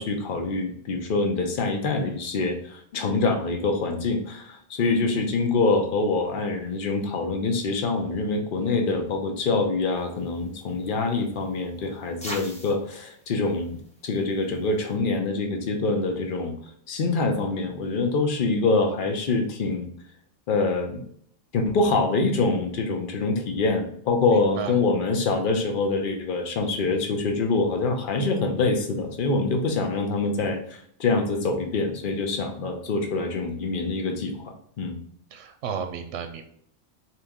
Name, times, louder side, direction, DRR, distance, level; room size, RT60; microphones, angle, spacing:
voice 1, 0.0-13.8 14.0-16.5 16.9-19.9 20.5-21.0 21.5-35.0, left 3 dB, 50° left, 4 dB, 0.8 m, -25 dB
sound 1, 9.9-15.0, equal, 5° left, 0.7 m, -45 dB
voice 2, 24.3-24.8 35.3-36.4, right 7 dB, 70° right, 6 dB, 0.9 m, -33 dB
4.1 x 2.9 x 3.5 m, 0.64 s
omnidirectional pair, 1.3 m